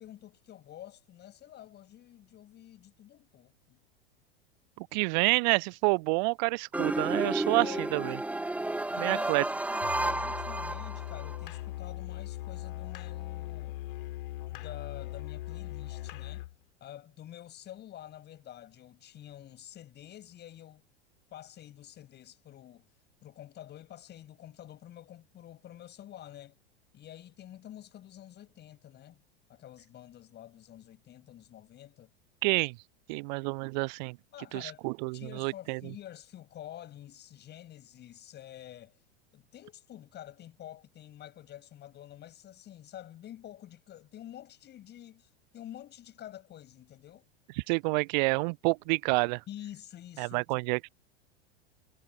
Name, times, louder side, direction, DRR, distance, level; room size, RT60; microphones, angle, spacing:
voice 1, 0.0-3.8 7.5-8.0 8.9-9.3 9.7-13.8 14.5-16.5 16.8-20.8 21.3-22.8 23.2-26.6 26.9-29.2 29.5-32.1 34.3-34.8 35.1-39.0 39.3-47.3 49.5-50.4, left 12 dB, 30° left, 7.8 m, -48 dB
voice 2, 4.8-8.2 9.0-9.4 32.4-32.8 33.1-34.2 34.5-35.8 47.7-49.4 50.2-50.9, right 30 dB, 45° right, 0.8 m, -28 dB
sound 1, 6.7-11.4, right 2 dB, 5° right, 1.4 m, -32 dB
Musical instrument, 9.8-16.6, left 16 dB, 55° left, 3.2 m, -39 dB
figure-of-eight pair, 85°, 32 cm